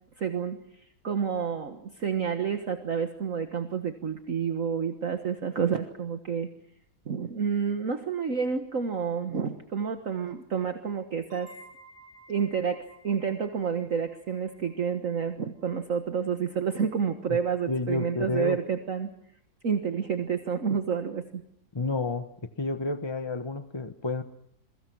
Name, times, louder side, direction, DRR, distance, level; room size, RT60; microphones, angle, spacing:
voice 1, 0.2-6.5 7.1-11.5 12.3-19.1 19.6-21.4, right 6 dB, 50° right, 7 dB, 1.8 m, -29 dB
sound 1, 11.3-16.7, right 2 dB, 65° left, 8.5 m, -55 dB
voice 2, 17.7-18.6 21.7-22.3 22.6-24.2, left 2 dB, 20° left, 9 dB, 0.8 m, -30 dB
28.5 x 23.0 x 6.1 m, 0.69 s
omnidirectional pair, 1.9 m